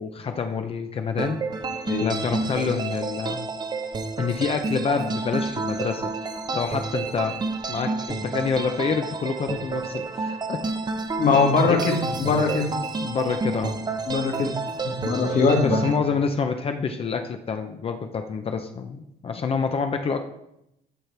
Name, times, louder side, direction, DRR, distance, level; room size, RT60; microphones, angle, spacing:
voice 1, 0.0-1.4 2.0-3.5 4.2-6.1 6.5-7.4 7.7-10.7 11.6-11.8 12.1-12.2 13.0-13.8 15.6-20.2, left 5 dB, 35° left, 6 dB, 0.6 m, -27 dB
sound 1, 1.2-16.0, right 3 dB, 25° right, 0.7 m, -30 dB
voice 2, 11.2-12.7 14.1-14.5 14.8-15.8, left 4 dB, 50° left, 3 dB, 1.6 m, -21 dB
12.5 x 4.4 x 3.3 m, 0.81 s
cardioid pair, 110°, 17 cm